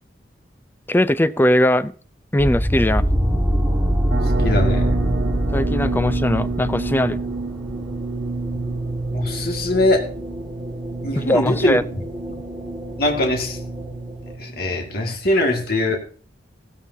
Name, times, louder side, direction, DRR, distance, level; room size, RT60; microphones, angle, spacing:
voice 1, 0.9-1.9 2.3-3.1 5.5-7.2 11.2-11.8, left 1 dB, 10° left, 0.4 m, -19 dB
sound 1, 2.4-14.3, equal, 10° right, 2.1 m, -25 dB
sound 2, 4.1-15.1, right 3 dB, 80° right, 0.7 m, -29 dB
voice 2, 4.2-5.0 9.1-10.1 11.0-11.8 13.0-13.6 14.4-16.0, left 1 dB, 60° left, 2.1 m, -21 dB
15.5 x 13.5 x 2.8 m
head